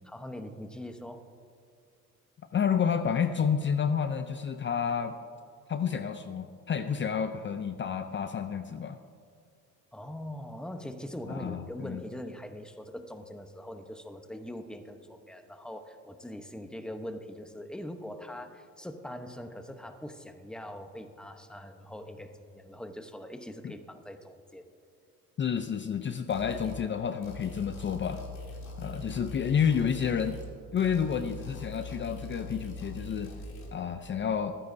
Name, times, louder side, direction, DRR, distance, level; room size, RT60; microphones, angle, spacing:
voice 1, 0.0-1.3 9.9-24.7, left 1 dB, 5° left, 7 dB, 0.9 m, -42 dB
voice 2, 2.5-5.1 5.7-9.0 11.3-12.0 23.6-23.7 25.4-28.2 28.8-30.4 30.7-33.3 33.7-34.5, left 7 dB, 40° left, 9 dB, 0.5 m, -30 dB
sound 1, 26.3-26.8 27.2-30.5 30.8-33.7, left 3 dB, 65° left, 2.9 m, -42 dB
26.0 x 9.6 x 2.7 m, 2.4 s
cardioid pair, 90°, 30 cm